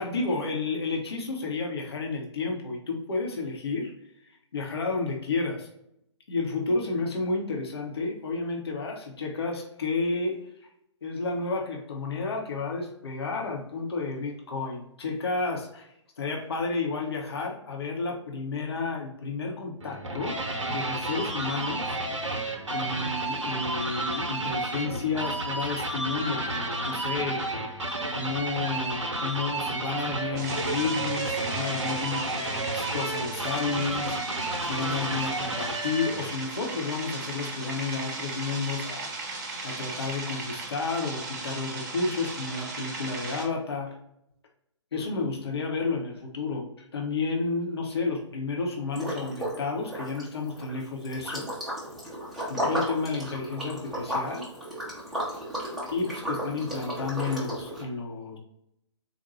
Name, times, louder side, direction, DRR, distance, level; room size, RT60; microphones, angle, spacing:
voice 1, 0.0-3.9 4.5-5.7 6.3-10.5 11.0-22.0 22.7-39.1 39.6-44.0 44.9-51.5 52.5-54.5 55.9-58.4, left 4 dB, 55° left, 1 dB, 0.8 m, -31 dB
sound 1, 19.8-36.3, right 2 dB, 75° right, 0.7 m, -31 dB
sound 2, 30.4-43.5, right 3 dB, 35° right, 0.7 m, -37 dB
Liquid, 48.9-49.6 49.9-57.8, equal, ahead, 0.6 m, -34 dB
4.0 x 2.2 x 2.8 m, 0.76 s
figure-of-eight pair, 130°, 16 cm